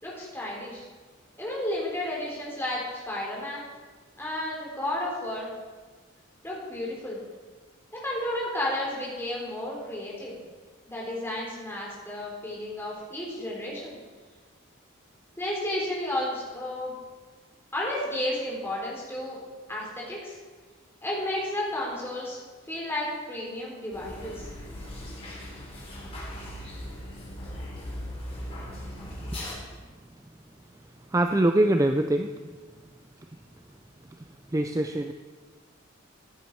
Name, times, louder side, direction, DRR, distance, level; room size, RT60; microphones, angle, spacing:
voice 1, 0.0-0.9 1.4-3.6 4.2-5.5 6.4-7.2 8.0-10.3 10.9-14.0 15.4-16.9 17.7-19.4 19.7-20.4 21.0-22.4 22.7-24.5, left 1 dB, 10° left, -4 dB, 3.6 m, -32 dB
sound 1, 23.9-29.5, left 1 dB, 30° left, 4.0 m, -39 dB
voice 2, 31.1-32.3 34.5-35.1, right 1 dB, 15° right, 6 dB, 0.4 m, -23 dB
14.5 x 10.5 x 4.6 m, 1.4 s
head